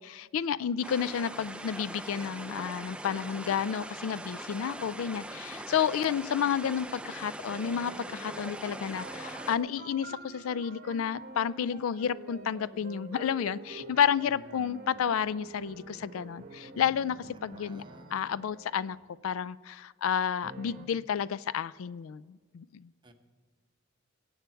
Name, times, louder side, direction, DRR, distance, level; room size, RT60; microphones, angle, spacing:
voice 1, 0.0-17.8 18.1-19.0 19.2-22.9, left 8 dB, 85° left, 19 dB, 0.4 m, -31 dB
sound 1, 0.8-9.6, right 1 dB, 5° right, 0.5 m, -42 dB
sound 2, 7.5-19.0 20.4-20.9, right 3 dB, 40° right, 1.1 m, -47 dB
voice 2, 17.5-18.2 23.0-23.1, right 1 dB, 25° right, 5 dB, 1.1 m, -55 dB
21.5 x 8.1 x 4.5 m, 1.6 s
head